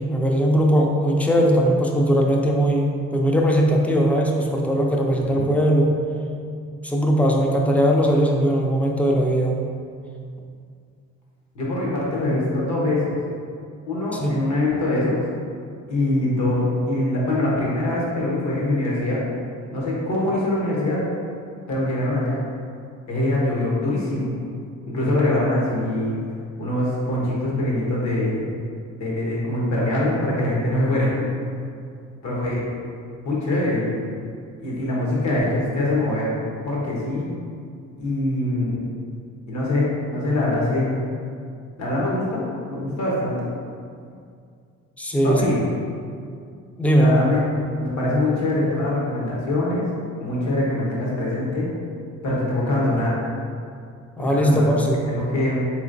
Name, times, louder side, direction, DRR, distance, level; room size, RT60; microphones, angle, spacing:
voice 1, 0.0-5.9 6.8-9.6 14.2-14.3 45.0-45.4 46.8-47.1 54.2-55.0, equal, 5° left, 0 dB, 0.4 m, -19 dB
voice 2, 5.2-5.5 11.5-13.1 13.9-15.2 15.9-19.2 19.7-21.0 21.7-22.4 23.1-24.3 24.9-26.2 26.6-28.4 29.0-31.2 32.2-32.6 33.2-34.1 34.6-36.3 36.6-37.3 38.0-38.9 39.5-41.0 41.8-42.4 42.7-43.5 45.2-45.6 47.0-49.8 50.2-51.7 52.2-53.2 54.2-54.7 55.1-55.6, left 1 dB, 65° left, -5 dB, 1.1 m, -23 dB
3.8 x 3.0 x 2.6 m, 2.3 s
cardioid pair, 90°, 30 cm